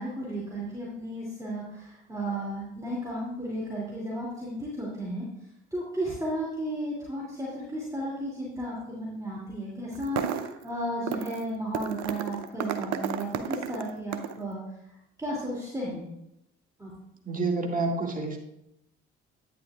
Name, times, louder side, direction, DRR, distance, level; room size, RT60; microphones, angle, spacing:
voice 1, 0.0-5.3 5.7-14.6 14.9-16.0 16.8-16.9, right 1 dB, 10° right, -5 dB, 2.7 m, -34 dB
sound 1, 9.9-10.6 11.1-11.4 11.7-14.4, right 9 dB, 55° right, 0.7 m, -32 dB
voice 2, 17.2-18.4, right 3 dB, 25° right, 0 dB, 2.1 m, -28 dB
10.5 x 9.3 x 2.4 m, 0.84 s
hypercardioid pair, 50°, 33 cm